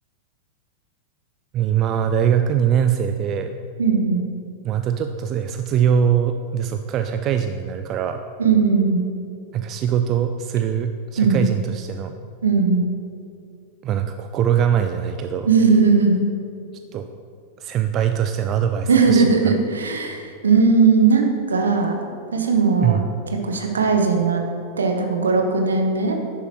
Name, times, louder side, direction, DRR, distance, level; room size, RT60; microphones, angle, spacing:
voice 1, 1.5-3.5 4.6-8.2 9.5-12.1 13.8-15.5 16.9-17.1 17.6-19.5 22.8-23.0, right 8 dB, 35° right, 7 dB, 0.3 m, -22 dB
voice 2, 3.8-4.3 8.4-9.0 11.2-11.5 12.4-12.9 15.4-16.2 18.9-22.0 22.3-23.0 23.4-24.4 24.8-26.2, right 4 dB, 70° right, 3 dB, 1.0 m, -18 dB
10.5 x 7.0 x 3.1 m, 2.4 s
figure-of-eight pair, 90°, 0 cm